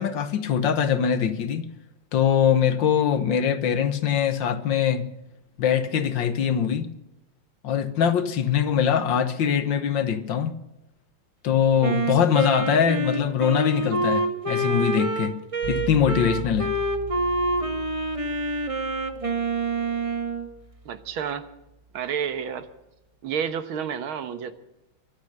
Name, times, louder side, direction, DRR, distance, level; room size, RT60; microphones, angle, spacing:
voice 1, 0.0-1.6 2.1-5.1 5.6-6.9 7.6-10.5 11.4-15.3 15.7-16.7, left 8 dB, 65° left, 11 dB, 1.7 m, -22 dB
Wind instrument woodwind instrument, 11.8-20.5, right 2 dB, 20° right, 1.2 m, -27 dB
sound 1, 15.6-21.4, right 2 dB, 50° right, 2.2 m, -39 dB
voice 2, 20.9-21.5 21.9-22.7 23.2-24.5, right 7 dB, 75° right, 11 dB, 1.9 m, -30 dB
23.5 x 8.5 x 6.7 m, 0.94 s
omnidirectional pair, 2.3 m